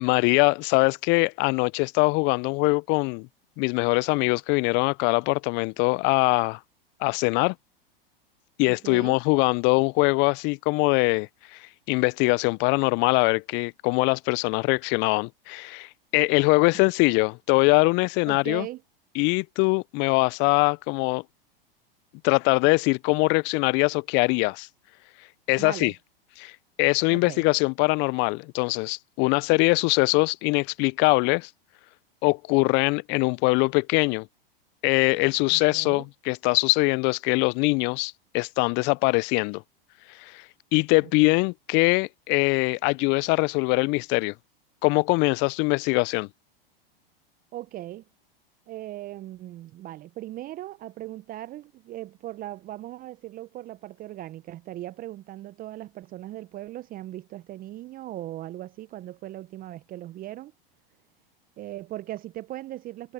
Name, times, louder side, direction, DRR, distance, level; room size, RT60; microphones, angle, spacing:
voice 1, 0.0-3.3 3.6-6.6 7.0-7.5 8.6-11.6 11.9-18.7 19.2-21.2 22.2-24.7 25.5-25.9 26.4-26.5 26.8-31.5 32.2-34.3 34.8-39.6 40.2-40.4 40.7-44.3 44.8-46.3, left 29 dB, 40° left, 0.6 m, -22 dB
voice 2, 8.8-9.2 18.3-18.8 25.6-25.9 27.1-27.4 35.5-36.1 41.0-41.3 47.5-48.0 48.7-60.5 61.6-63.1, right 15 dB, 30° right, 0.8 m, -38 dB
hypercardioid pair, 100°, 29 cm